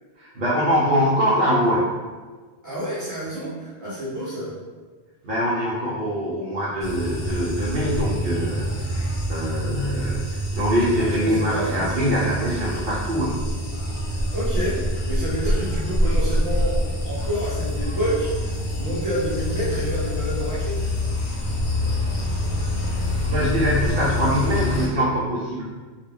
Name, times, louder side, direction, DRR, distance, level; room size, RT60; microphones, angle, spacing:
voice 1, 0.2-1.9 5.2-13.4 23.3-25.6, equal, 60° right, -8 dB, 0.7 m, -23 dB
voice 2, 2.6-4.5 11.0-12.3 14.1-16.8 17.0-20.9, equal, 20° left, -10 dB, 0.8 m, -29 dB
sound 1, 6.8-24.9, left 1 dB, 90° left, 0.9 m, -26 dB
2.3 x 2.1 x 3.3 m, 1.4 s
omnidirectional pair, 1.1 m